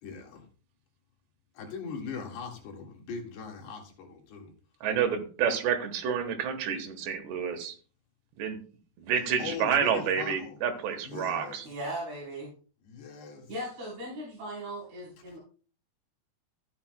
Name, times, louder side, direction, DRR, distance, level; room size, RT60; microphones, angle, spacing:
voice 1, 0.0-0.4 1.6-4.5 9.4-10.6 11.0-11.6 12.8-13.5, left 5 dB, 80° left, 1 dB, 4.0 m, -40 dB
voice 2, 4.8-7.8 8.4-8.6 9.0-11.7, right 7 dB, 90° right, 5 dB, 3.5 m, -29 dB
voice 3, 11.6-12.5 13.5-15.4, right 1 dB, 45° right, -6 dB, 4.9 m, -38 dB
13.5 x 10.5 x 2.2 m, 0.38 s
omnidirectional pair, 4.7 m